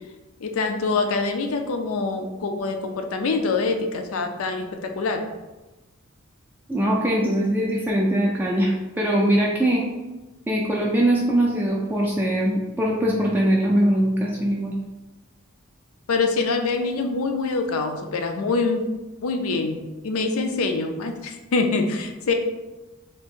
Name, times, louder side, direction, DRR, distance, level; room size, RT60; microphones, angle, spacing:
voice 1, 0.4-5.2 16.1-18.8 19.2-22.3, left 3 dB, 75° left, 5 dB, 0.4 m, -25 dB
voice 2, 6.7-9.8 10.5-14.7, right 1 dB, 10° right, -4 dB, 0.3 m, -21 dB
2.8 x 2.5 x 3.6 m, 1.1 s
head